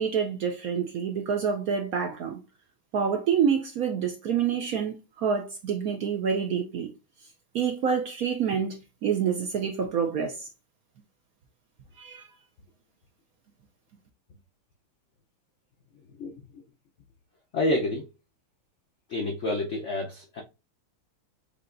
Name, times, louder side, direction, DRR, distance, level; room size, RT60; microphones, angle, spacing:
voice 1, 0.0-2.4 2.9-6.9 7.5-10.5 12.0-12.3, right 7 dB, 65° right, 0.9 m, -27 dB
voice 2, 16.2-16.6 17.5-18.1 19.1-20.4, left 1 dB, 75° left, 0.6 m, -29 dB
6.6 x 2.8 x 2.5 m
omnidirectional pair, 2.1 m